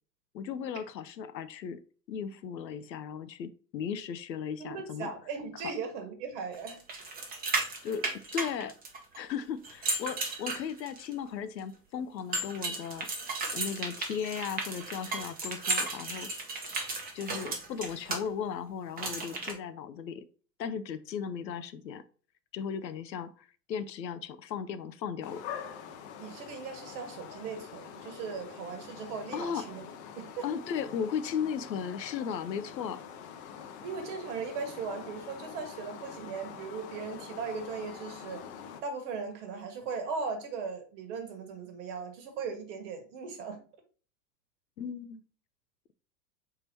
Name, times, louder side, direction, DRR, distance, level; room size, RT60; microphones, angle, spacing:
voice 1, 0.3-1.8 2.1-5.1 5.6-5.7 7.8-8.0 8.3-8.7 9.2-13.1 13.5-16.3 17.1-20.3 20.6-22.0 22.5-25.4 29.3-29.7 30.4-33.0 44.8-45.2, left 7 dB, 85° left, 12 dB, 0.6 m, -36 dB
voice 2, 4.6-6.8 26.2-29.8 30.1-30.5 33.8-38.4 38.8-43.6, right 5 dB, 45° right, 5 dB, 1.3 m, -38 dB
sound 1, 6.7-9.2 9.6-11.1 12.3-18.2 19.0-19.5, right 3 dB, 20° right, 0.9 m, -34 dB
sound 2, 25.2-38.8, left 8 dB, 40° left, 0.7 m, -45 dB
3.6 x 2.8 x 4.3 m, 0.40 s
figure-of-eight pair, 100°, 50 cm